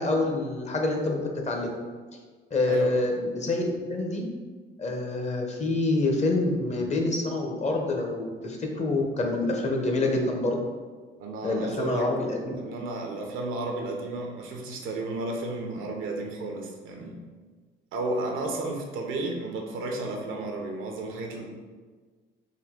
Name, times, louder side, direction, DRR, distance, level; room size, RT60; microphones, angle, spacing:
voice 1, 0.0-1.7 2.5-4.3 4.8-10.6 11.4-12.5, left 2 dB, 35° left, 2 dB, 0.7 m, -27 dB
voice 2, 2.7-3.0 11.2-12.1 12.6-17.2 17.9-21.5, right 2 dB, 90° right, 1 dB, 0.7 m, -33 dB
3.7 x 2.6 x 3.6 m, 1.4 s
cardioid pair, 90°, 20 cm